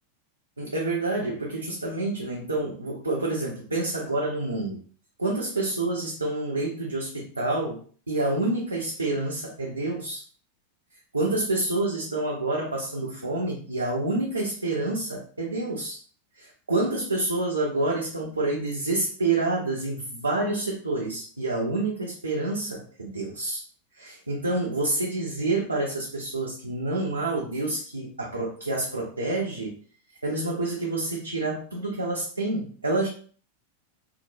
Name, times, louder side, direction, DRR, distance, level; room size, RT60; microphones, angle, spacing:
voice 1, 0.6-4.8 5.2-10.2 11.1-16.0 16.4-23.6 23.9-29.8 30.2-33.1, right 2 dB, 80° right, -4 dB, 0.5 m, -28 dB
2.9 x 2.1 x 2.6 m, 0.43 s
figure-of-eight pair, 90°, 0 cm